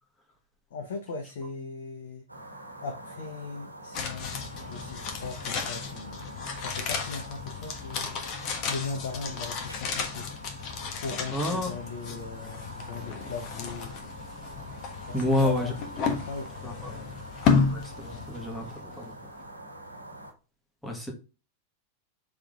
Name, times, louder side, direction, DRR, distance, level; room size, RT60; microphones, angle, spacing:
voice 1, 0.7-2.2 2.8-8.2 8.7-10.3 11.0-14.1 15.1-17.2 18.1-18.3, left 4 dB, 60° left, 3 dB, 1.0 m, -39 dB
sound 1, 2.3-20.3, right 2 dB, 85° right, 1.4 m, -45 dB
sound 2, 3.9-19.1 19.4-19.5, left 5 dB, 40° left, 1.2 m, -33 dB
voice 2, 11.3-11.7 15.1-15.7 16.6-16.9 17.7-19.2 20.8-21.1, left 1 dB, 5° left, 0 dB, 1.8 m, -29 dB
6.9 x 3.7 x 3.7 m, 0.31 s
figure-of-eight pair, 90°, 0 cm